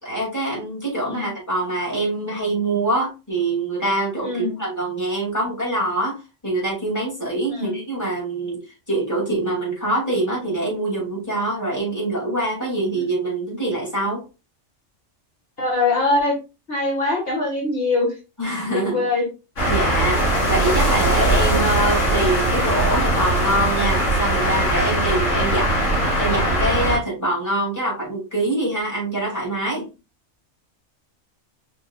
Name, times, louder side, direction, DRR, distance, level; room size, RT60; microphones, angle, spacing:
voice 1, 0.0-8.6 8.9-14.2 18.4-19.0 19.7-25.7 26.2-29.9, right 2 dB, 15° left, -5 dB, 2.6 m, -24 dB
voice 2, 4.2-4.6 7.5-7.8 13.0-13.1 15.6-16.3 16.7-18.2 18.7-19.3 25.4-25.6, left 2 dB, 50° left, -3 dB, 1.9 m, -23 dB
sound 1, 19.6-27.0, right 1 dB, 75° left, 2.6 m, -20 dB
5.3 x 4.2 x 2.4 m, 0.29 s
omnidirectional pair, 1.3 m